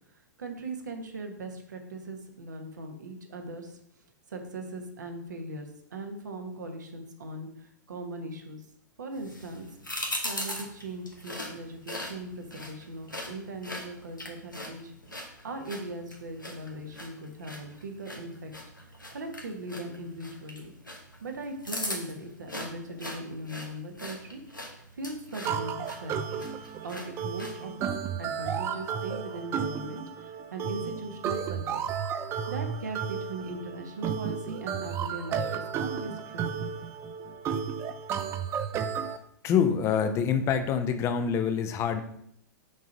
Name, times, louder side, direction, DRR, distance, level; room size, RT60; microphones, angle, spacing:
voice 1, 0.4-3.8 4.3-8.6 9.0-9.7 10.2-14.9 15.4-18.5 18.8-20.7 21.2-26.5 26.8-31.8 32.5-36.6 37.3-37.4, right 2 dB, 65° right, 4 dB, 1.3 m, -39 dB
sound 1, 9.1-27.6, left 1 dB, 90° left, 1.3 m, -41 dB
sound 2, 25.4-39.2, right 7 dB, 25° right, 0.5 m, -33 dB
voice 2, 39.4-42.0, left 7 dB, 25° left, 9 dB, 0.7 m, -26 dB
6.2 x 3.9 x 5.2 m, 0.70 s
figure-of-eight pair, 105°, 10 cm